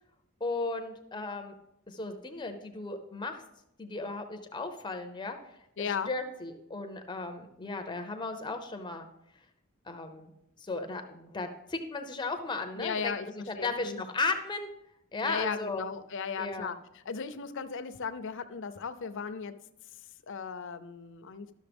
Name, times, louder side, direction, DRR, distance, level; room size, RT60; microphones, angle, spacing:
voice 1, 0.4-1.5 1.9-3.4 3.8-5.4 5.8-9.1 9.9-10.3 10.6-14.7 15.1-15.9 16.4-16.7, left 3 dB, 20° left, 6 dB, 0.6 m, -35 dB
voice 2, 5.8-6.1 12.8-13.2 13.6-14.0 15.2-16.8 17.1-19.5 20.3-21.5, left 6 dB, 60° left, 9 dB, 0.6 m, -36 dB
12.0 x 6.4 x 3.5 m, 0.83 s
head